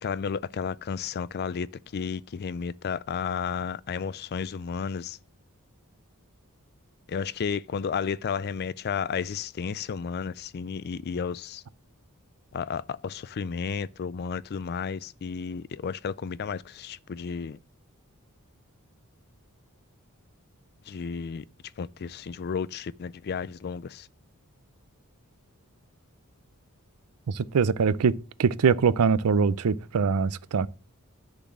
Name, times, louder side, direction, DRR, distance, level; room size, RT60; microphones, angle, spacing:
voice 1, 0.0-1.7 1.9-5.2 7.1-11.6 12.5-17.6 20.9-21.4 21.8-24.1, left 6 dB, 45° left, 0.4 m, -32 dB
voice 2, 27.3-28.1 28.4-30.7, right 5 dB, 90° right, 0.5 m, -23 dB
10.0 x 4.0 x 7.4 m
head